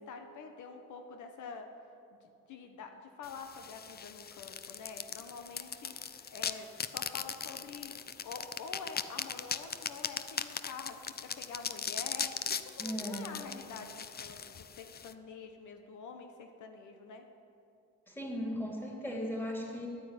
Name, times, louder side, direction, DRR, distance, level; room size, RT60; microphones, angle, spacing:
voice 1, 0.0-1.7 2.1-7.9 8.2-13.9 14.2-17.2, left 5 dB, 75° left, 5 dB, 1.2 m, -47 dB
sound 1, 3.2-15.1, left 7 dB, 30° left, 0.6 m, -39 dB
voice 2, 12.8-13.4 18.1-19.9, equal, 5° left, -1 dB, 3.4 m, -37 dB
10.0 x 9.4 x 9.4 m, 2.7 s
cardioid pair, 90°, 30 cm